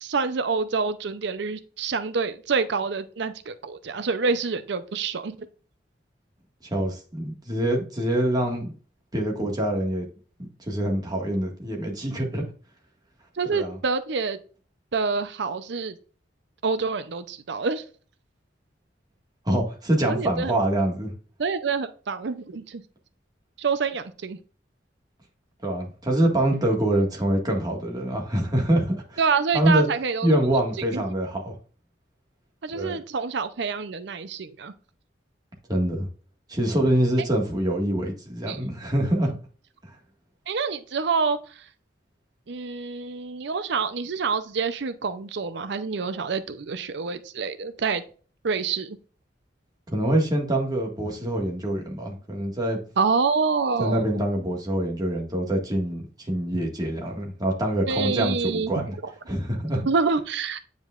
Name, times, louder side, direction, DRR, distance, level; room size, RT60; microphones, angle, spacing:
voice 1, 0.0-5.4 13.4-14.4 14.9-16.0 16.6-17.8 20.1-20.5 21.4-22.8 23.6-24.4 29.2-30.4 30.9-31.0 32.6-34.7 38.5-38.6 40.5-41.4 42.5-48.0 48.4-49.0 53.0-54.0 57.9-59.1 59.9-60.6, right 5 dB, 70° right, 11 dB, 0.6 m, -27 dB
voice 2, 6.7-8.7 9.1-10.1 10.4-12.5 13.4-13.8 19.5-21.1 25.6-29.2 29.5-29.9 30.2-31.6 32.7-33.0 35.7-36.1 36.5-39.3 49.9-52.8 53.8-58.9 59.3-59.9, right 1 dB, 20° right, 0 dB, 1.7 m, -25 dB
9.1 x 5.1 x 2.4 m, 0.39 s
head